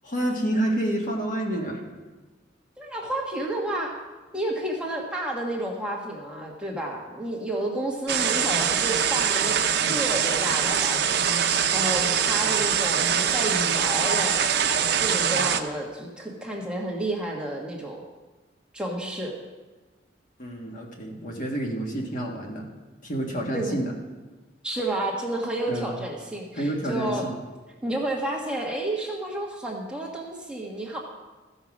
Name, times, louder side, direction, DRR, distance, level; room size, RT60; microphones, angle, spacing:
voice 1, 0.0-1.8 20.4-22.7 23.0-23.9 25.7-26.0 26.5-27.4, right 1 dB, 45° left, 0 dB, 1.7 m, -29 dB
voice 2, 2.8-3.9 4.3-14.4 14.8-18.0 18.7-19.3 23.5-23.8 24.6-27.2 27.8-31.0, right 1 dB, 5° right, -2 dB, 1.4 m, -31 dB
sound 1, 8.1-15.6, right 8 dB, 60° right, 0.7 m, -23 dB
14.5 x 5.6 x 6.1 m, 1.2 s
head